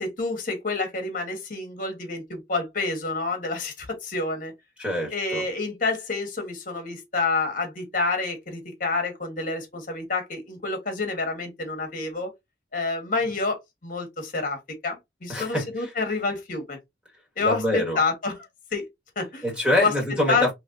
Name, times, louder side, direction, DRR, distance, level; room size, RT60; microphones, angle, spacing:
voice 1, 0.0-4.5 5.1-12.3 12.7-16.8 17.4-18.5 18.7-18.9 19.2-19.4 19.8-19.9 20.3-20.5, left 3 dB, 50° left, 1.2 m, -28 dB
voice 2, 4.8-5.4 15.3-15.9 17.4-18.0 19.4-20.5, left 1 dB, 5° right, 1.6 m, -25 dB
3.3 x 3.1 x 2.5 m
head